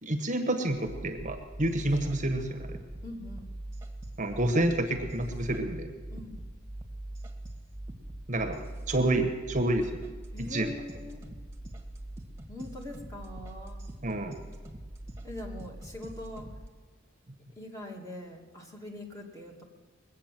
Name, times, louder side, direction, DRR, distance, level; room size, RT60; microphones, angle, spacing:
voice 1, 0.0-2.8 4.2-5.9 8.3-9.9 10.4-10.7 14.0-14.3, right 1 dB, 40° right, 5 dB, 1.2 m, -29 dB
sound 1, 0.7-16.7, right 1 dB, 15° right, 1.6 m, -43 dB
voice 2, 3.0-3.5 6.1-6.3 10.3-11.2 12.5-13.8 15.2-16.5 17.6-19.6, left 1 dB, 15° left, 0 dB, 2.1 m, -42 dB
21.0 x 8.5 x 7.5 m, 1.4 s
head